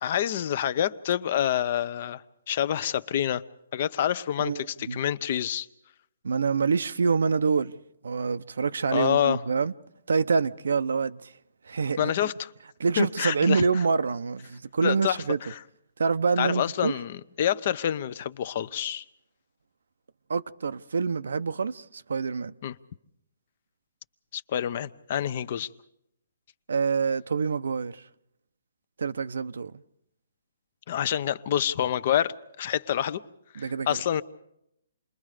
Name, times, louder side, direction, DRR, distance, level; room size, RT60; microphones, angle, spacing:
voice 1, 0.0-3.4 3.7-5.7 8.9-9.4 12.0-12.5 13.0-13.6 14.8-15.6 16.4-19.0 22.6-22.7 24.3-25.7 30.9-33.2 33.5-34.2, left 10 dB, 40° left, 0.7 m, -27 dB
voice 2, 4.4-5.0 6.2-7.7 8.0-9.7 10.1-11.2 11.7-12.3 12.8-15.4 16.0-16.9 20.3-22.5 26.7-28.0 29.0-29.7 33.6-34.0, right 5 dB, 85° right, 0.8 m, -26 dB
29.0 x 21.5 x 5.0 m
hypercardioid pair, 170°, 0 cm